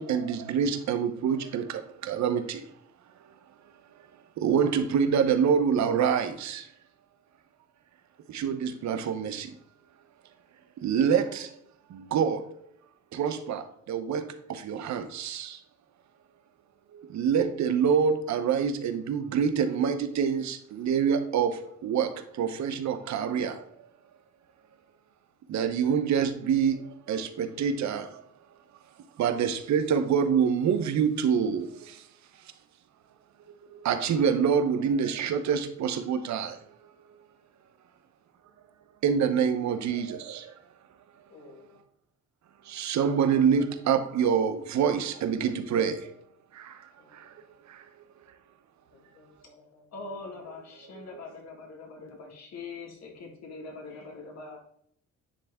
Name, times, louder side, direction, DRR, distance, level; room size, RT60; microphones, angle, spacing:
voice 1, 0.0-2.6 4.4-6.7 8.3-9.5 10.8-11.5 11.9-12.5 13.1-15.6 16.9-23.6 25.5-28.2 29.2-32.1 33.7-36.6 39.0-40.5 42.6-46.1 46.5-47.4 47.7-47.9 51.0-51.1, right 7 dB, 65° right, 0.8 m, -26 dB
voice 2, 41.3-41.8 47.0-47.4 48.9-49.9 50.4-50.5 50.9-51.2 51.8-52.0 53.8-54.6, left 3 dB, 85° left, 2.1 m, -55 dB
voice 3, 49.9-54.6, left 3 dB, 60° left, 1.7 m, -42 dB
9.8 x 3.3 x 3.5 m
cardioid pair, 90°, 30 cm